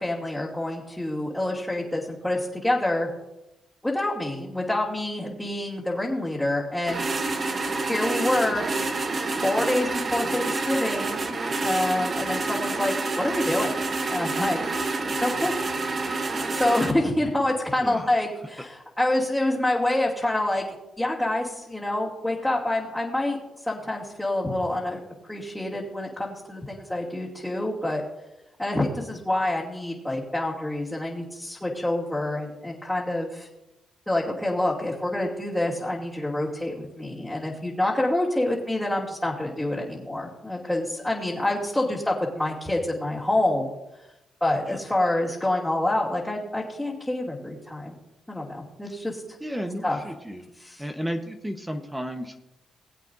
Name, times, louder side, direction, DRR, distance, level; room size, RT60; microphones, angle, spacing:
voice 1, 0.0-3.1 3.8-7.0 7.8-8.6 9.3-11.3 11.6-13.7 14.1-14.6 15.2-15.5 16.5-20.6 21.0-25.0 25.3-28.0 28.6-33.5 34.1-43.7 44.4-48.0 48.3-49.2 49.8-50.0 50.6-50.8, left 1 dB, 10° left, -7 dB, 2.5 m, -27 dB
sound 1, 6.9-16.9, right 3 dB, 45° right, 1.1 m, -28 dB
voice 2, 15.6-16.0 17.8-18.1 44.7-44.8 49.4-50.5 50.8-52.4, equal, 5° right, 4 dB, 1.0 m, -33 dB
21.0 x 8.2 x 2.6 m, 0.92 s
cardioid pair, 75°, 0 cm